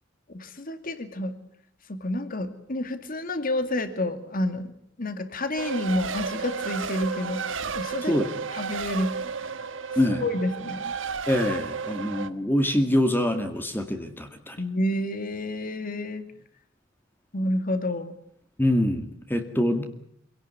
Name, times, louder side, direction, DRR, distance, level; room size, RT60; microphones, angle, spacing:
voice 1, 0.3-1.4 1.9-4.7 5.0-7.5 7.7-8.1 8.5-9.2 10.2-10.9 14.6-16.3 17.3-18.1, left 1 dB, 50° left, 9 dB, 2.3 m, -29 dB
Race car auto racing, 5.6-12.3, right 5 dB, 75° right, 1.3 m, -32 dB
voice 2, 11.3-14.6 18.6-19.8, left 1 dB, 10° left, 6 dB, 2.1 m, -25 dB
25.5 x 17.5 x 9.8 m, 0.69 s
head